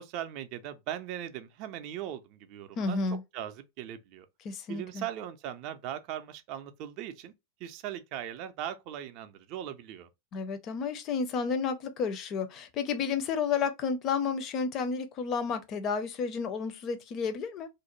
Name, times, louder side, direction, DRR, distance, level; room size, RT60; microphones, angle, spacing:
voice 1, 0.0-3.0 3.3-4.3 4.7-7.3 7.6-10.1, right 11 dB, 40° right, 0.4 m, -39 dB
voice 2, 2.8-3.2 4.4-5.1 10.3-17.7, left 5 dB, 35° left, 0.5 m, -31 dB
2.5 x 2.0 x 2.9 m
figure-of-eight pair, 90°, 0 cm